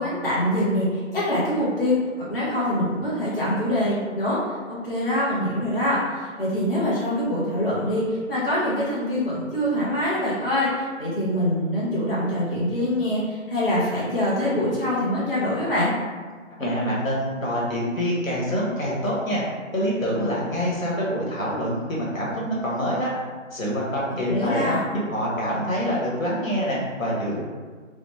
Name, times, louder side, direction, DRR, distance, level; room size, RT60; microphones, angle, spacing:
voice 1, 0.0-4.4 4.7-15.9 24.3-24.8, left 1 dB, 45° left, -8 dB, 0.8 m, -24 dB
voice 2, 16.6-19.4 19.7-23.1 23.5-24.7 25.1-27.4, equal, 85° left, -5 dB, 1.2 m, -26 dB
2.9 x 2.0 x 3.1 m, 1.5 s
figure-of-eight pair, 165°, 39 cm